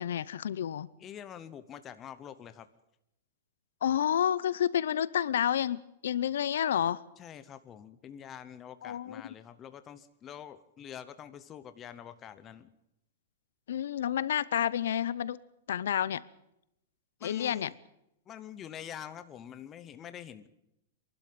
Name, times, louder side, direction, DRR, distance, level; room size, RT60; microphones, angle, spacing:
voice 1, 0.0-0.9 3.8-7.0 8.8-9.2 13.7-15.4 15.7-16.2 17.2-17.7, left 10 dB, 75° left, 20 dB, 0.7 m, -29 dB
voice 2, 1.0-2.7 7.2-12.7 17.2-17.8 18.3-20.5, left 9 dB, 15° left, 12 dB, 0.7 m, -46 dB
24.0 x 12.0 x 9.2 m, 0.83 s
supercardioid pair, 180°, 0 cm